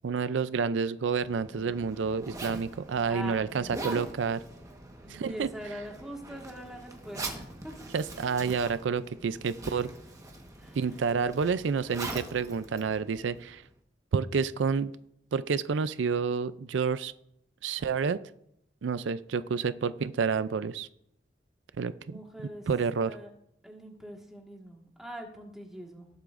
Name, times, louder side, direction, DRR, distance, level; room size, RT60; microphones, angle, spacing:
voice 1, 0.0-4.4 5.1-5.5 7.9-9.9 10.7-13.6 14.1-14.9 15.3-17.1 17.6-18.2 18.8-20.9 21.8-22.2 22.7-23.2, right 5 dB, 85° right, 14 dB, 0.4 m, -29 dB
Zipper (clothing), 1.0-13.7, right 2 dB, 20° right, 1.3 m, -43 dB
voice 2, 3.1-3.9 5.0-7.7 10.6-10.8 22.1-22.7 23.0-23.3 23.6-26.1, right 1 dB, 5° right, 0 dB, 1.7 m, -43 dB
19.0 x 8.0 x 2.6 m, 0.75 s
head